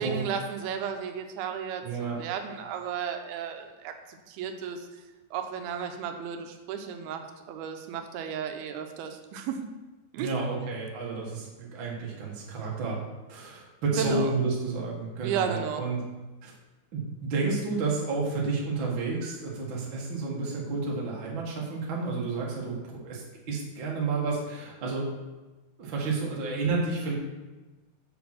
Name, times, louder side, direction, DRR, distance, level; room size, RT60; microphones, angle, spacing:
voice 1, 0.0-3.9 4.3-4.9 5.3-9.6 10.1-10.3 14.0-14.3 15.2-15.9, right 7 dB, 85° right, 6 dB, 2.6 m, -33 dB
voice 2, 1.8-2.2 10.2-13.0 13.3-16.0 16.4-16.5 16.9-25.1 25.8-27.2, right 3 dB, 45° right, -3 dB, 1.7 m, -31 dB
7.2 x 5.2 x 6.0 m, 1.2 s
omnidirectional pair, 4.4 m